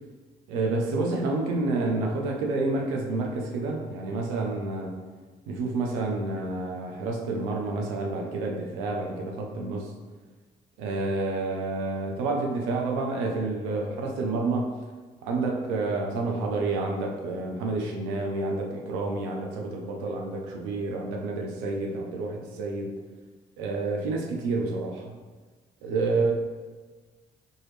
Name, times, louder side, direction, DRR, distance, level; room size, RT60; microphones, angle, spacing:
voice 1, 0.5-4.9 5.5-9.9 10.8-14.8 15.2-23.0 23.6-25.2 25.8-26.3, right 3 dB, 80° right, 1 dB, 0.7 m, -29 dB
4.5 x 3.1 x 3.2 m, 1.4 s
hypercardioid pair, 55°, 20 cm